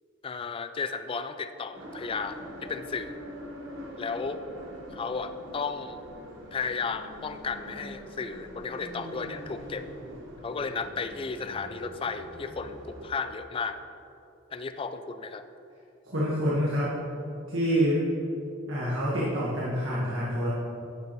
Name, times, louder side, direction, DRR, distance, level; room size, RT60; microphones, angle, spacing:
voice 1, 0.2-3.2 4.0-4.4 4.9-6.0 6.5-9.9 10.4-13.8 14.5-15.4, left 5 dB, 25° left, 10 dB, 0.3 m, -34 dB
sound 1, 1.7-13.1, equal, 65° right, 1.2 m, -43 dB
voice 2, 16.0-17.0 17.5-18.0 18.7-20.5, equal, 85° right, -7 dB, 1.6 m, -27 dB
10.5 x 6.6 x 3.1 m, 2.7 s
head